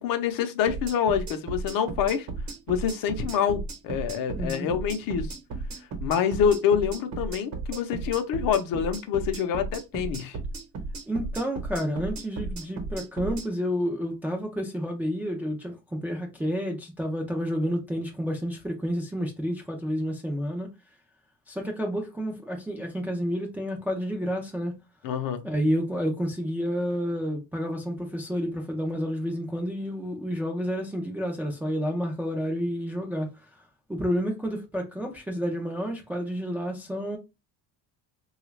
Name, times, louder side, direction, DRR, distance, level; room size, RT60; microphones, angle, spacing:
voice 1, 0.0-2.3 2.7-5.4 6.0-10.4 25.0-25.5, left 8 dB, 60° left, 0.7 m, -26 dB
sound 1, 0.7-13.5, right 3 dB, 50° right, 1.0 m, -35 dB
voice 2, 4.3-4.7 11.1-20.7 21.5-24.8 25.4-33.6 33.9-37.2, equal, 5° right, 0.3 m, -30 dB
3.2 x 2.4 x 3.0 m
cardioid pair, 160°, 37 cm